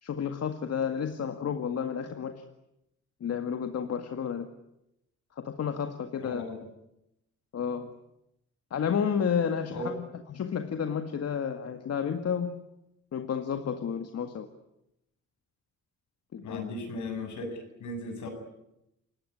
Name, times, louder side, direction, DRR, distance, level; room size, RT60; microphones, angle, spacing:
voice 1, 0.0-2.4 3.2-4.5 5.4-6.4 7.5-7.9 8.7-10.0 10.3-12.5 13.1-14.5 16.3-16.6, left 7 dB, 55° left, 7 dB, 2.0 m, -31 dB
voice 2, 6.2-6.6 9.7-9.9 16.4-18.3, left 2 dB, 75° left, 5 dB, 8.0 m, -36 dB
29.0 x 17.5 x 9.9 m, 0.87 s
cardioid pair, 90°, 30 cm